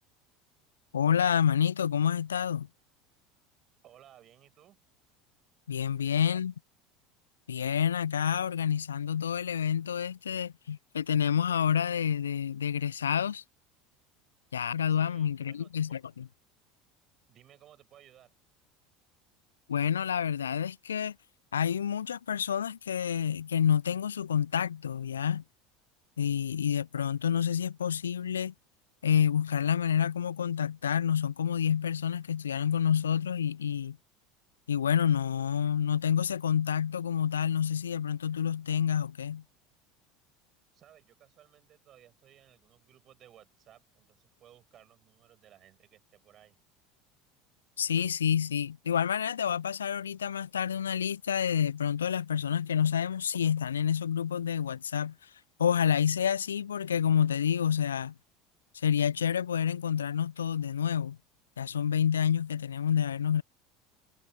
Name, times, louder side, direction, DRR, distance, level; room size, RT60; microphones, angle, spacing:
voice 1, 0.9-2.7 5.7-6.5 7.5-13.4 14.5-16.3 19.7-21.1 21.5-25.4 26.2-28.5 29.0-34.0 34.7-39.4 47.8-55.1 55.6-58.1 58.7-61.2 61.6-63.4, left 8 dB, 75° left, 0.5 m, -28 dB
voice 2, 3.8-4.8 6.0-6.4 14.9-16.0 17.3-18.3 40.7-46.5, right 11 dB, 40° right, 6.5 m, -59 dB
figure-of-eight pair, 70°, 0 cm